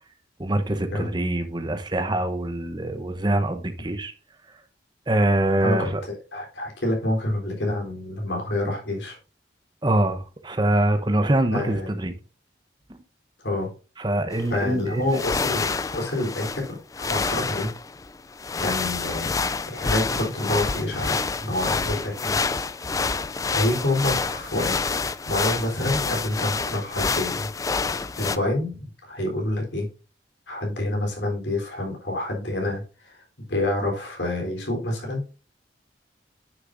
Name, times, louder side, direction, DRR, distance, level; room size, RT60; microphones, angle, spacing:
voice 1, 0.4-4.1 5.1-6.0 9.8-12.1 14.0-15.2, right 1 dB, 25° right, 0.8 m, -24 dB
voice 2, 5.6-9.2 11.5-11.9 13.4-13.7 14.5-17.7 18.6-19.4 19.7-22.4 23.5-27.5 28.2-29.9 30.5-33.2 33.5-35.2, left 1 dB, 80° left, 3.6 m, -28 dB
sound 1, 14.3-14.4 15.1-28.4, left 4 dB, 20° left, 0.3 m, -28 dB
9.5 x 6.6 x 2.6 m
head